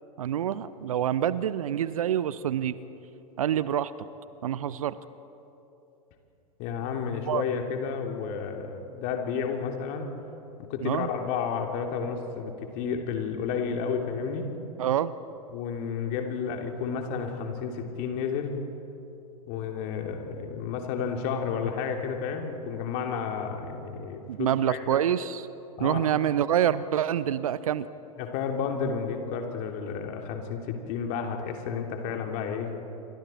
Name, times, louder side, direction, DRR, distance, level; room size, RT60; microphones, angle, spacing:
voice 1, 0.2-2.8 3.4-3.9 4.4-5.0 7.3-7.4 10.8-11.1 14.8-15.1 24.3-25.4 25.8-27.9, right 10 dB, 65° right, 17 dB, 0.8 m, -26 dB
voice 2, 6.6-10.1 10.6-14.5 15.5-18.5 19.5-25.0 25.8-26.0 28.2-32.7, left 6 dB, 45° left, 3 dB, 3.0 m, -31 dB
28.0 x 25.0 x 4.5 m, 2.9 s
figure-of-eight pair, 90°, 19 cm